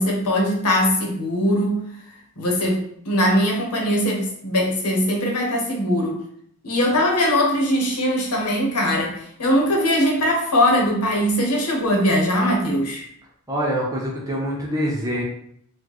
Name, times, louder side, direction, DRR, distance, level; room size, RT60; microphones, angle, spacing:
voice 1, 0.0-1.8 2.4-6.2 6.6-13.0, equal, 85° left, 0 dB, 1.0 m, -21 dB
voice 2, 13.5-15.2, equal, 15° right, -4 dB, 0.8 m, -25 dB
4.2 x 2.3 x 3.1 m, 0.68 s
head